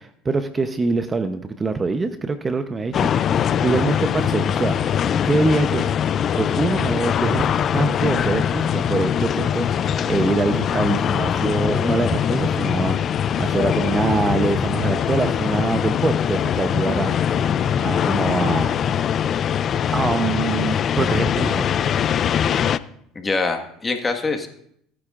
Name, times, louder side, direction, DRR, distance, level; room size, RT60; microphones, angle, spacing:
voice 1, 0.0-5.9 6.4-7.5 7.7-17.2 17.8-18.7 19.9-21.6, right 3 dB, 25° right, 9 dB, 0.8 m, -24 dB
sound 1, 2.9-22.8, left 8 dB, 45° left, 0.4 m, -22 dB
voice 2, 23.1-24.5, left 3 dB, 20° left, 5 dB, 1.6 m, -25 dB
18.0 x 9.8 x 2.5 m, 0.70 s
supercardioid pair, 85°, 0 cm